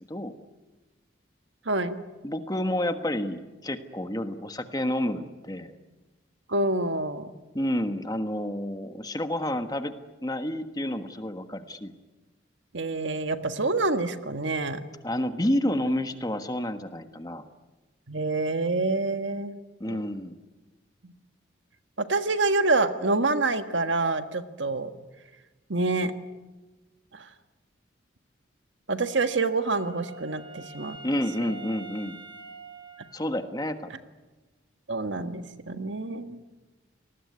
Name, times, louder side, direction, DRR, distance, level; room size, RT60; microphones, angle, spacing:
voice 1, 1.6-2.0 6.5-7.3 12.7-14.8 18.1-19.5 19.9-20.0 21.0-21.1 22.0-24.9 25.7-26.1 27.1-27.2 28.9-31.0 34.9-36.4, right 3 dB, 75° right, 9 dB, 1.6 m, -27 dB
voice 2, 2.2-5.7 7.5-11.9 15.0-17.4 19.8-20.4 31.0-32.2 33.1-33.9, left 1 dB, 20° left, 8 dB, 1.4 m, -29 dB
Wind instrument woodwind instrument, 29.0-33.8, right 4 dB, 25° right, 5.0 m, -46 dB
28.5 x 19.5 x 9.7 m, 1.2 s
head